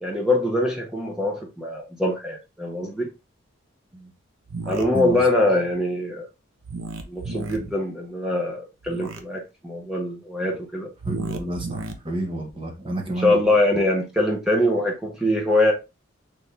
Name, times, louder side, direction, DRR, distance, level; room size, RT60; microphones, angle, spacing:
voice 1, 0.0-3.1 4.7-6.3 7.1-10.9 13.1-15.7, left 1 dB, 5° right, 0.8 m, -23 dB
sound 1, 4.5-4.8 6.6-7.6 8.8-9.2 11.0-11.9, right 3 dB, 80° right, 0.7 m, -32 dB
voice 2, 11.0-13.4, right 1 dB, 25° right, 1.0 m, -30 dB
4.2 x 3.5 x 3.3 m
head